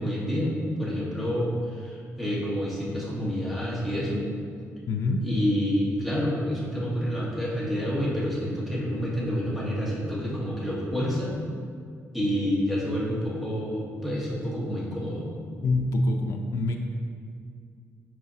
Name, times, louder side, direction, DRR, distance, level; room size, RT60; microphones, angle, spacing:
voice 1, 0.0-4.2 5.2-11.4 12.1-15.3, equal, ahead, -7 dB, 1.6 m, -28 dB
voice 2, 4.9-5.2 15.6-16.8, left 2 dB, 70° left, 3 dB, 0.5 m, -25 dB
9.1 x 4.7 x 2.8 m, 2.3 s
cardioid pair, 140°, 6 cm